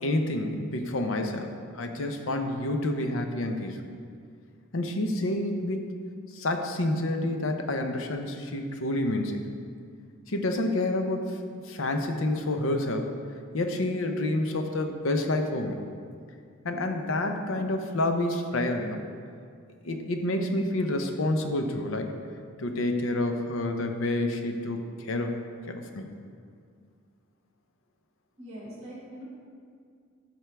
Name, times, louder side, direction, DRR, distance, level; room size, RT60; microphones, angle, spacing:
voice 1, 0.0-3.8 4.7-5.9 6.3-9.4 10.3-13.1 13.5-15.8 16.6-19.1 19.8-22.1 22.6-25.3 25.7-26.1, left 1 dB, 85° left, 5 dB, 0.7 m, -28 dB
voice 2, 28.4-29.2, equal, 35° right, -5 dB, 1.9 m, -42 dB
12.5 x 4.5 x 3.4 m, 2.2 s
head